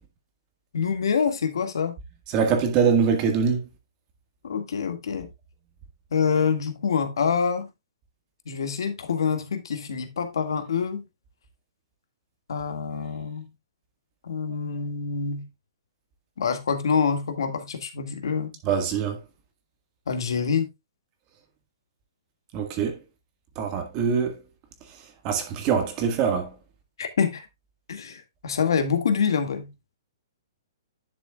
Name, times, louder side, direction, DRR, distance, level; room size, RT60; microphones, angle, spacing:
voice 1, 0.7-1.9 4.4-5.3 6.1-7.7 8.5-11.0 12.5-13.5 14.2-15.5 16.4-18.6 20.1-20.7 27.0-27.5 27.9-29.7, left 6 dB, 75° left, 2.0 m, -26 dB
voice 2, 2.3-3.6 18.6-19.2 22.5-23.0 23.5-24.4 25.2-26.5, right 6 dB, 25° right, 1.7 m, -23 dB
11.0 x 6.9 x 2.4 m
hypercardioid pair, 170°, 2 cm